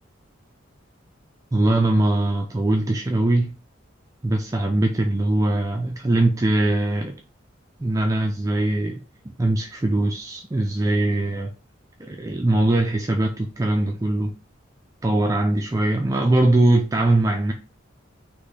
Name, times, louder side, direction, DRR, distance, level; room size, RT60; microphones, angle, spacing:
voice 1, 1.5-3.5 4.2-7.1 7.8-9.0 9.2-11.5 12.0-14.3 15.0-17.5, right 1 dB, 15° right, 0.3 m, -21 dB
4.3 x 3.0 x 3.2 m
head